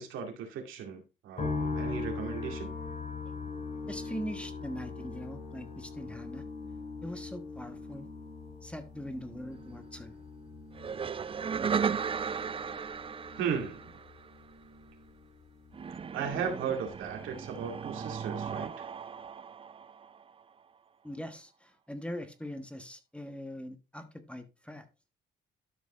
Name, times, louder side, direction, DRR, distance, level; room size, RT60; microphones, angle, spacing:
voice 1, 0.0-2.7 13.4-14.0 16.1-18.9, right 7 dB, 85° right, 2.3 m, -36 dB
sound 1, 1.4-16.6 16.9-17.7, left 4 dB, 40° left, 5.0 m, -41 dB
voice 2, 3.7-6.5 7.0-8.1 8.6-10.2 21.0-24.9, equal, 5° left, 1.2 m, -42 dB
sound 2, 10.7-14.4 15.7-20.4, right 6 dB, 25° right, 0.4 m, -36 dB
12.5 x 5.0 x 3.1 m
cardioid pair, 90°, 20 cm